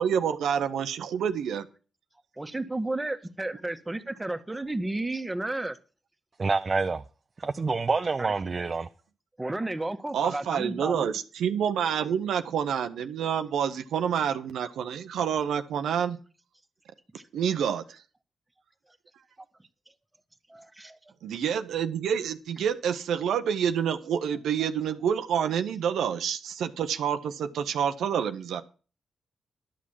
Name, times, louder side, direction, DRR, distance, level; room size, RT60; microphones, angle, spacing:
voice 1, 0.0-1.7 10.1-16.2 17.3-18.0 21.2-28.6, right 8 dB, 80° right, 0.7 m, -28 dB
voice 2, 2.4-5.8 8.2-8.3 9.4-11.2 17.2-17.3 20.5-21.1 24.6-24.7, right 2 dB, 20° right, 1.5 m, -33 dB
voice 3, 6.4-7.0 7.4-8.9, right 4 dB, 45° right, 0.7 m, -27 dB
11.5 x 6.4 x 7.3 m
supercardioid pair, 45°, 0 cm